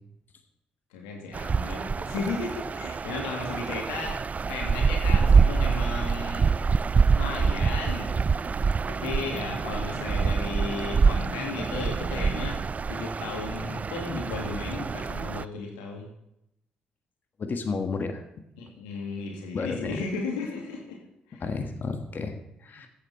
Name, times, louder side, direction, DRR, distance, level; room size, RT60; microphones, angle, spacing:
voice 1, 0.9-4.2 4.5-6.5 7.1-8.3 8.9-16.1 18.6-21.0 21.3-21.5 22.7-22.8, left 4 dB, 90° left, 0 dB, 2.5 m, -35 dB
sound 1, 1.3-15.4, right 5 dB, 35° right, 0.4 m, -26 dB
voice 2, 17.4-18.2 19.5-20.0 21.4-22.3 22.6-22.9, left 4 dB, 50° left, 7 dB, 1.5 m, -31 dB
14.5 x 8.6 x 4.3 m, 0.81 s
hypercardioid pair, 50°, 4 cm